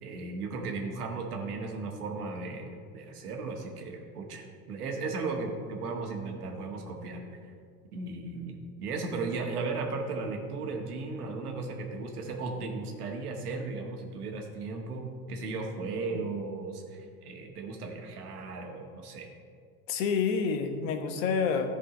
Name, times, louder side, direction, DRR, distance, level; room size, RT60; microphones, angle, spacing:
voice 1, 0.0-7.2 7.9-19.3, right 3 dB, 75° right, 2 dB, 1.7 m, -36 dB
voice 2, 19.9-21.7, left 5 dB, 60° left, 6 dB, 1.2 m, -28 dB
13.5 x 5.1 x 5.1 m, 2.1 s
hypercardioid pair, 85°, 45 cm